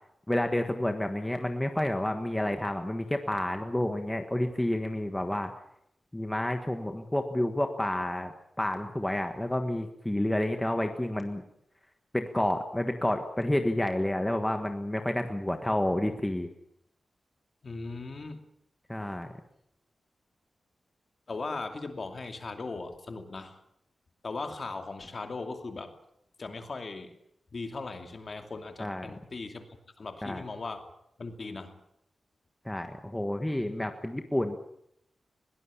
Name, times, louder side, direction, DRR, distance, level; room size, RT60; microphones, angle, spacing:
voice 1, 0.3-5.5 6.1-8.3 8.6-11.4 12.1-16.5 18.9-19.3 28.8-29.1 30.2-30.4 32.6-34.6, left 1 dB, 10° left, 5 dB, 1.4 m, -29 dB
voice 2, 17.6-18.4 21.3-23.6 24.2-25.9 26.4-27.1 27.5-30.9 31.2-31.8 33.6-33.8, left 3 dB, 40° left, 6 dB, 2.6 m, -38 dB
21.5 x 18.5 x 8.6 m, 0.76 s
wide cardioid pair, 165°, 0 cm